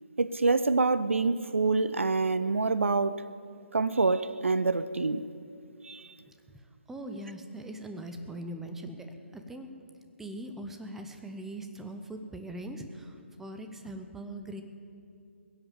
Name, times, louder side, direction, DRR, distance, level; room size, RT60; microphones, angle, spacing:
voice 1, 0.2-3.2 3.7-5.2 5.8-6.1, right 3 dB, 70° right, 15 dB, 0.6 m, -26 dB
voice 2, 6.9-9.1 9.3-9.7 10.2-14.6, right 1 dB, 5° right, 6 dB, 0.8 m, -41 dB
21.0 x 8.0 x 7.3 m, 2.5 s
figure-of-eight pair, 140°, 7 cm